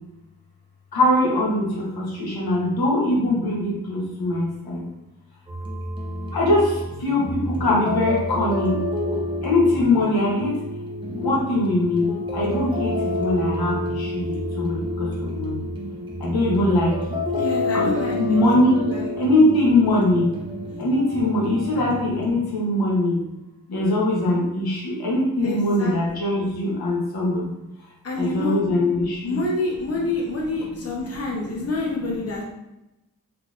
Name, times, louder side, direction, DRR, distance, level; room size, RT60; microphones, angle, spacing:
voice 1, 0.9-4.8 6.3-6.7 7.0-9.2 9.4-10.5 11.1-12.1 12.3-12.9 13.2-14.2 14.6-15.6 16.2-16.9 17.7-17.9 18.3-18.9 19.2-20.3 20.8-23.2 23.7-27.4 28.2-29.4, left 1 dB, 85° left, -4 dB, 1.0 m, -21 dB
sound 1, 5.5-22.3, left 1 dB, 15° right, 0.7 m, -29 dB
voice 2, 17.4-18.4 18.7-19.1 25.4-25.9 28.0-28.6 29.2-32.4, left 2 dB, 40° left, -3 dB, 0.9 m, -27 dB
3.6 x 2.8 x 2.4 m, 0.92 s
cardioid pair, 65°, 37 cm